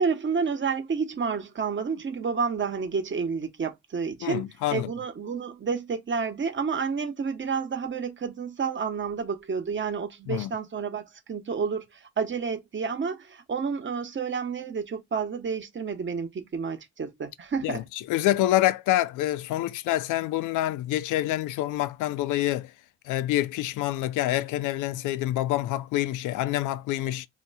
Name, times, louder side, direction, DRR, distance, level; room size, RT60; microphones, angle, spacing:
voice 1, 0.0-4.4 4.7-17.8, right 5 dB, 40° right, 1.2 m, -30 dB
voice 2, 4.2-4.9 10.3-10.5 17.6-22.7 23.1-27.3, left 14 dB, 85° left, 0.5 m, -27 dB
2.8 x 2.3 x 4.1 m
cardioid pair, 90°, 30 cm